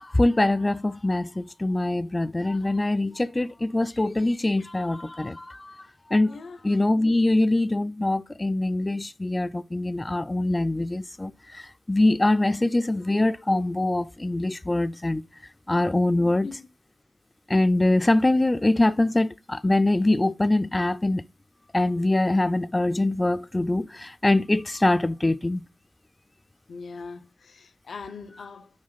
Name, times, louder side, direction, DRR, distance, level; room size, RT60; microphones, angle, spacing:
voice 1, 0.0-6.4 6.6-15.2 15.7-16.5 17.5-21.2 21.7-25.6, left 2 dB, 20° left, 0.3 m, -23 dB
voice 2, 6.2-6.6 16.2-16.7 26.7-28.7, left 4 dB, 80° left, 1.0 m, -41 dB
9.6 x 6.3 x 4.0 m
wide cardioid pair, 90°, 0 cm